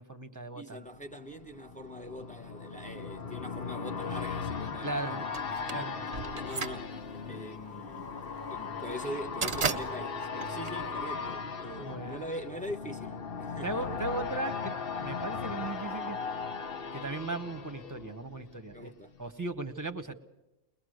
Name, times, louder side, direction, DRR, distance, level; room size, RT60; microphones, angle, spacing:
voice 1, 0.0-0.8 4.8-5.3 5.7-6.0 11.8-12.2 13.6-16.2 16.9-18.9 19.2-20.2, right 2 dB, 20° right, 1.1 m, -37 dB
voice 2, 0.5-5.3 5.7-6.0 6.3-7.0 7.3-8.2 8.5-14.0 18.7-19.1, equal, 10° left, 1.0 m, -42 dB
sound 1, 1.0-18.8 19.1-19.2, left 5 dB, 65° left, 1.2 m, -38 dB
sound 2, 5.3-11.5, right 5 dB, 40° right, 0.9 m, -36 dB
22.0 x 20.5 x 6.5 m
omnidirectional pair, 1.1 m